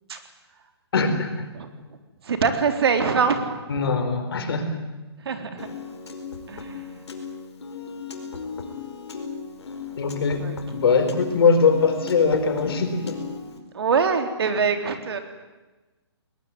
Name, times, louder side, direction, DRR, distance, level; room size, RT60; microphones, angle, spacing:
voice 1, 0.9-1.5 3.7-4.8 10.0-10.4 10.7-13.2, left 5 dB, 60° left, 7 dB, 4.6 m, -21 dB
voice 2, 2.2-3.6 5.2-5.7 6.5-6.8 10.4-10.8 13.7-15.2, right 5 dB, 65° right, 7 dB, 3.7 m, -24 dB
Piano, 5.6-13.6, left 5 dB, 80° left, 4.9 m, -36 dB
21.0 x 20.0 x 9.8 m, 1.2 s
hypercardioid pair, 155°, 14 cm